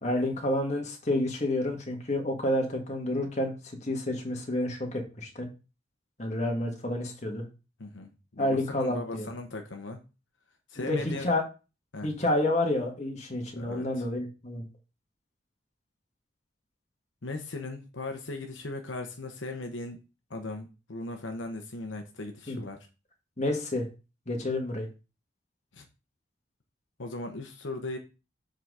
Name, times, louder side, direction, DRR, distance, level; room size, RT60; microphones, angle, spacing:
voice 1, 0.0-3.5 3.8-5.5 6.2-7.4 8.4-9.3 10.8-11.4 12.0-14.6 22.5-22.6 23.4-23.8 24.3-24.9, left 1 dB, 35° left, 2 dB, 1.7 m, -29 dB
voice 2, 7.8-10.0 10.7-11.3 11.9-12.1 13.6-14.0 17.2-20.0 20.3-22.9 25.7-25.9 27.0-28.0, left 2 dB, 80° left, 4 dB, 1.0 m, -38 dB
7.5 x 4.0 x 4.8 m, 0.30 s
head